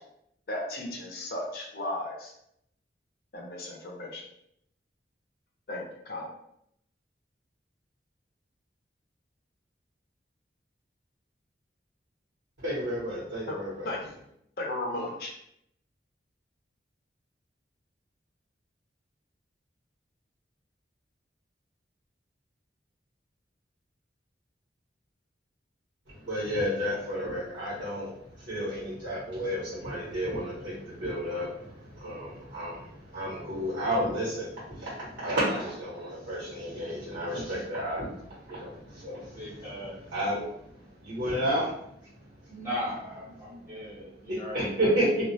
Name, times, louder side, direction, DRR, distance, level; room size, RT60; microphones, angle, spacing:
voice 1, 0.5-2.3 3.3-4.2 5.7-6.3 13.5-13.6 13.8-14.1 14.6-15.3, left 1 dB, 55° left, -1 dB, 0.6 m, -35 dB
voice 2, 12.6-13.9 26.1-39.6 40.1-42.1 42.4-42.5 44.3-45.1, equal, 85° right, -11 dB, 1.0 m, -32 dB
voice 3, 39.4-40.0 42.5-45.2, equal, 10° right, -11 dB, 0.6 m, -38 dB
2.3 x 2.1 x 2.6 m, 0.74 s
head